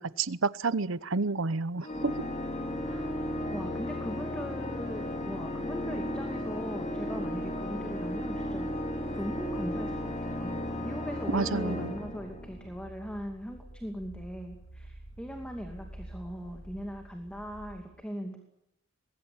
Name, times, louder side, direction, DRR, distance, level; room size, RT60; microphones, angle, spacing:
voice 1, 0.0-2.1 11.3-11.9, right 3 dB, 75° right, 17 dB, 0.9 m, -30 dB
Organ, 1.8-12.8, left 1 dB, 35° left, 2.9 m, -34 dB
voice 2, 2.9-3.2 3.5-8.7 9.1-18.4, equal, 5° left, 4 dB, 2.6 m, -40 dB
sound 1, 9.1-17.8, right 1 dB, 70° left, 3.8 m, -50 dB
24.0 x 21.0 x 8.7 m, 0.76 s
head